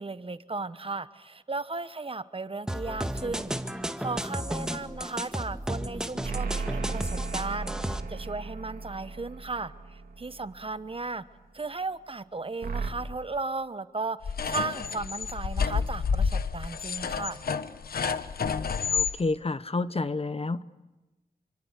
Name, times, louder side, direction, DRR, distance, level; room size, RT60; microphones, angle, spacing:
voice 1, 0.0-3.5 4.0-11.2 11.5-17.4, right 3 dB, 35° right, 13 dB, 1.2 m, -35 dB
sound 1, 2.7-8.0, equal, 5° right, 1.9 m, -33 dB
sound 2, 6.2-10.8 12.6-12.9, right 4 dB, 70° right, 3.2 m, -35 dB
sound 3, 14.2-19.1, left 6 dB, 75° left, 1.2 m, -29 dB
voice 2, 18.9-20.6, left 3 dB, 40° left, 14 dB, 1.1 m, -29 dB
27.5 x 25.0 x 8.3 m, 1.1 s
cardioid pair, 55°, 16 cm